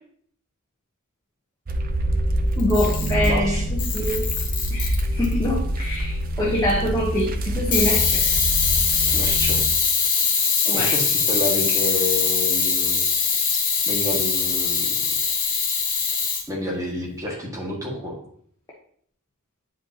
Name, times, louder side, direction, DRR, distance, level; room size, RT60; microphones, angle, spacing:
sound 1, 1.7-9.7, equal, 40° right, 0.6 m, -25 dB
Camera, 2.6-3.4 3.8-5.3 7.7-16.4, left 5 dB, 35° left, 1.5 m, -22 dB
voice 1, 2.6-4.3 4.7-8.3 10.6-10.9, left 1 dB, 15° left, -4 dB, 1.0 m, -25 dB
voice 2, 3.2-3.6 9.1-9.6 10.7-13.0 13.9-14.9 16.5-18.2, left 2 dB, 15° right, -3 dB, 1.8 m, -29 dB
9.3 x 5.2 x 2.9 m, 0.62 s
head